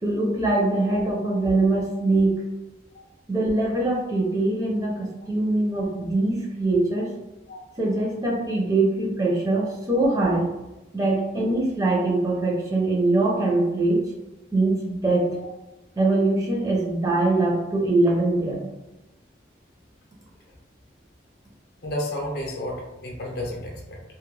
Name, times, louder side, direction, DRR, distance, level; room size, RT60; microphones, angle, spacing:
voice 1, 0.0-2.4 3.3-7.1 7.8-10.5 10.9-14.1 14.5-15.3 16.0-18.7, right 2 dB, 20° right, -3 dB, 0.4 m, -23 dB
voice 2, 21.8-24.0, left 1 dB, 55° left, -1 dB, 0.5 m, -32 dB
2.2 x 2.1 x 3.1 m, 0.99 s
head